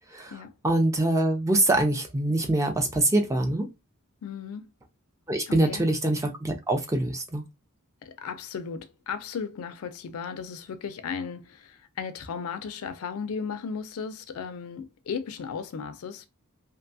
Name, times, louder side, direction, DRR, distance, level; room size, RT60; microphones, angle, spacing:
voice 1, 0.6-3.7 5.3-7.4, right 2 dB, 15° right, 0.4 m, -24 dB
voice 2, 4.2-4.7 5.5-5.8 8.0-16.3, left 6 dB, 65° left, 0.4 m, -35 dB
2.6 x 2.2 x 2.6 m
head